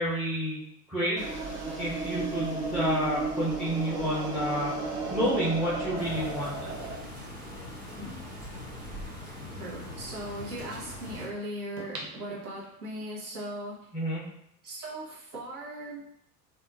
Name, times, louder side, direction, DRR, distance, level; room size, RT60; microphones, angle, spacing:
voice 1, 0.0-1.4 1.8-4.8 5.1-6.7 13.9-14.2, equal, ahead, -7 dB, 0.5 m, -30 dB
sound 1, 1.2-7.0, right 3 dB, 45° right, 1.2 m, -33 dB
sound 2, 5.9-11.3, left 1 dB, 15° right, 1.4 m, -42 dB
voice 2, 9.6-13.8 14.6-16.0, right 1 dB, 65° right, -5 dB, 1.3 m, -38 dB
sound 3, 11.8-13.1 13.6-13.7, right 2 dB, 80° right, 0.7 m, -43 dB
3.5 x 2.5 x 2.5 m, 0.76 s
figure-of-eight pair, 80°, 48 cm